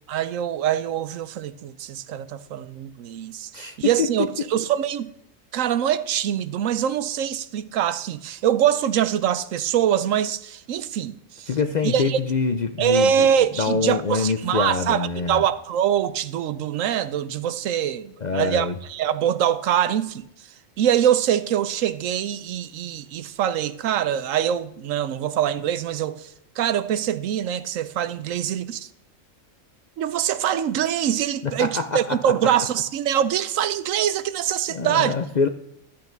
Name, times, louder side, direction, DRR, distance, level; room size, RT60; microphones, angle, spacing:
voice 1, 0.1-5.1 5.5-11.5 11.8-12.2 12.8-20.3 20.8-28.9 30.0-35.1, right 10 dB, 80° right, 1.0 m, -24 dB
voice 2, 3.5-4.1 11.5-13.3 13.6-15.4 18.2-18.7 31.4-32.2 34.7-35.5, left 4 dB, 50° left, 0.5 m, -25 dB
12.5 x 8.4 x 3.9 m
omnidirectional pair, 1.4 m